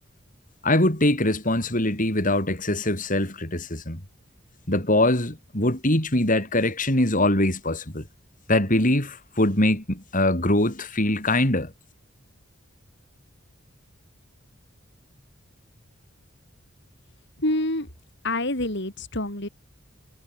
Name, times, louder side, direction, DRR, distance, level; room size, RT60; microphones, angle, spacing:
voice 1, 0.6-4.0 4.7-8.0 8.5-11.7, left 1 dB, 40° left, 6.5 m, -22 dB
voice 2, 17.4-17.9 18.2-19.5, left 1 dB, 60° left, 7.2 m, -27 dB
head